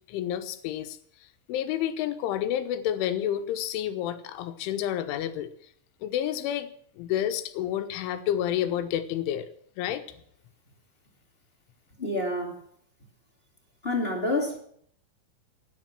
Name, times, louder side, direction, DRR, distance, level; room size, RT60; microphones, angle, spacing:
voice 1, 0.1-1.0 1.5-5.5 6.0-6.7 7.0-9.5 9.8-10.1, left 11 dB, 85° left, 9 dB, 3.6 m, -29 dB
voice 2, 12.0-12.5 13.8-14.6, left 2 dB, 25° left, 2 dB, 1.3 m, -28 dB
17.0 x 10.5 x 6.0 m, 0.63 s
omnidirectional pair, 5.4 m